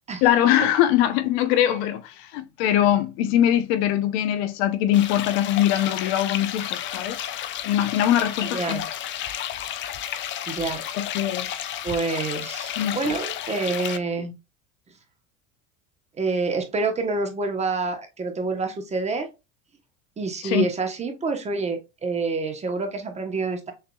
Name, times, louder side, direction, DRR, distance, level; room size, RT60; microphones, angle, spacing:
voice 1, 0.2-7.2 7.6-8.8 10.9-11.5 12.8-13.1 20.4-20.6, left 11 dB, 70° left, 0.7 m, -22 dB
sound 1, 4.9-14.0, left 11 dB, 35° left, 0.5 m, -32 dB
voice 2, 8.5-8.8 10.5-10.8 11.8-14.3 16.2-19.3 20.2-23.7, right 3 dB, 20° right, 1.0 m, -27 dB
6.6 x 2.7 x 2.3 m
supercardioid pair, 120°, 32 cm